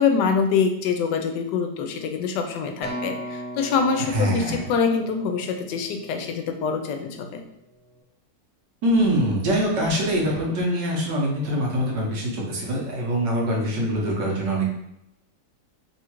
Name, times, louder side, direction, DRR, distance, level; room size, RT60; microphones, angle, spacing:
voice 1, 0.0-7.4, left 5 dB, 80° left, 6 dB, 1.2 m, -25 dB
Acoustic guitar, 2.8-7.2 7.9-8.0, equal, 10° left, 0.6 m, -38 dB
voice 2, 4.1-4.7 8.8-14.7, equal, 75° right, -2 dB, 1.6 m, -24 dB
3.6 x 2.4 x 4.4 m, 0.83 s
omnidirectional pair, 1.9 m